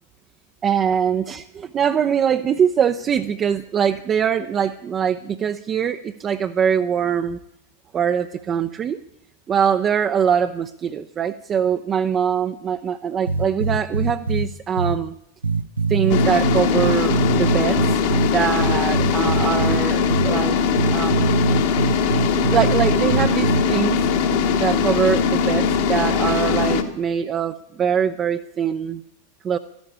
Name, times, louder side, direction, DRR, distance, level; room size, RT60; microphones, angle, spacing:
voice 1, 0.6-7.4 7.9-9.0 9.5-15.1 15.9-17.8 18.3-20.6 20.9-21.2 22.4-24.0 24.5-29.0 29.4-29.6, right 8 dB, 25° right, 8 dB, 0.5 m, -22 dB
sound 1, 13.3-14.5 14.8-15.0 15.4-18.3 18.6-19.8 20.1-20.3 20.8-23.6, right 4 dB, 75° right, 0.6 m, -22 dB
sound 2, 16.1-26.8, left 6 dB, 50° left, 1.4 m, -20 dB
13.5 x 11.5 x 8.4 m, 0.77 s
figure-of-eight pair, 90°, 0 cm